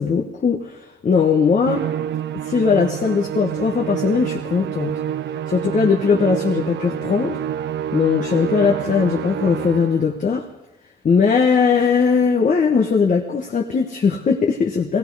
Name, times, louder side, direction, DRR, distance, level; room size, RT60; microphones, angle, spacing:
voice 1, 0.0-1.9 2.4-4.9 5.5-7.4 7.9-10.4 11.0-15.0, left 5 dB, 40° left, 1 dB, 1.1 m, -19 dB
Musical instrument, 1.7-10.1, right 10 dB, 60° right, 0.5 m, -27 dB
16.5 x 16.0 x 4.7 m, 0.99 s
cardioid pair, 90°, 20 cm